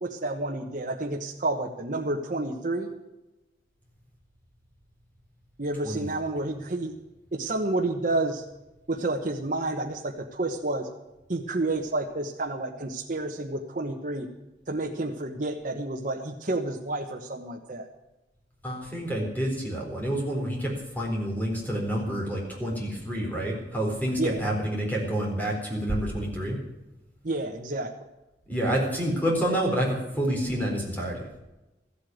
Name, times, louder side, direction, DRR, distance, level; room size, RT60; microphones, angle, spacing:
voice 1, 0.0-2.9 5.6-6.9 7.3-8.4 8.9-10.9 11.3-14.3 14.7-17.9 24.2-24.4 27.2-27.9, right 2 dB, 45° right, 1 dB, 1.1 m, -30 dB
voice 2, 18.6-26.6 28.5-31.2, right 1 dB, 10° left, -1 dB, 4.1 m, -28 dB
14.5 x 8.6 x 9.2 m, 0.99 s
head